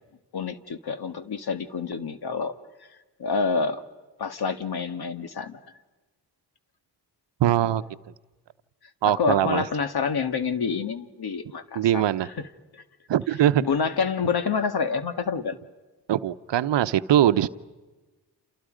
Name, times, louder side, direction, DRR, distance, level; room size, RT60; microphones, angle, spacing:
voice 1, 0.3-2.5 3.2-3.8 4.2-5.6 9.0-12.0 12.4-12.5 12.7-12.8 13.6-15.6, left 5 dB, 60° left, 10 dB, 1.8 m, -27 dB
voice 2, 7.4-7.8 9.0-9.6 11.7-12.3 13.1-13.6 16.1-17.5, right 11 dB, 75° right, 12 dB, 0.9 m, -21 dB
29.0 x 29.0 x 5.2 m, 1.2 s
cardioid pair, 65°, 43 cm